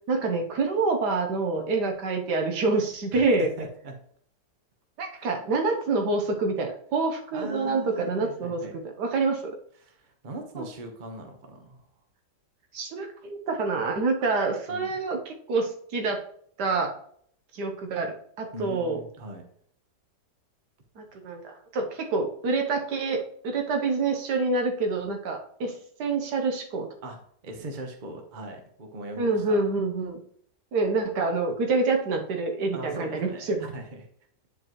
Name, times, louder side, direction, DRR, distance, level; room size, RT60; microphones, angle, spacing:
voice 1, 0.1-3.5 5.0-9.5 10.6-10.7 12.7-16.2 16.6-16.9 17.5-19.0 21.0-26.9 29.2-30.2 30.7-33.7, right 3 dB, 75° right, 3 dB, 1.6 m, -27 dB
voice 2, 3.1-4.0 5.1-5.2 7.3-8.7 9.8-11.9 14.7-14.9 18.5-19.5 27.0-29.6 32.7-34.1, right 2 dB, 35° right, 4 dB, 1.0 m, -40 dB
10.0 x 4.7 x 3.0 m, 0.64 s
omnidirectional pair, 1.8 m